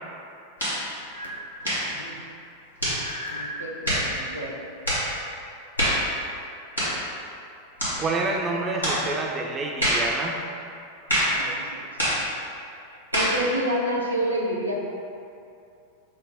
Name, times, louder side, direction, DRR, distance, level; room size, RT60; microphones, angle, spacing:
sound 1, 0.6-0.8 1.6-1.9 2.8-3.0 3.8-4.1 4.8-5.1 5.8-6.1 6.8-7.0 7.8-8.0 8.8-9.0 9.8-10.1 11.1-11.4 12.0-12.2 13.1-13.4, equal, 90° left, 1.2 m, -24 dB
sound 2, 1.1-1.5 2.8-3.6, equal, 75° left, 0.4 m, -36 dB
voice 1, 1.9-2.2 3.3-4.6 9.0-9.1 11.3-11.9 13.1-14.7, right 1 dB, 80° right, -3 dB, 0.5 m, -29 dB
voice 2, 8.0-10.4, right 3 dB, 25° right, 0 dB, 0.3 m, -28 dB
5.3 x 2.1 x 3.4 m, 2.6 s
figure-of-eight pair, 90°, 0 cm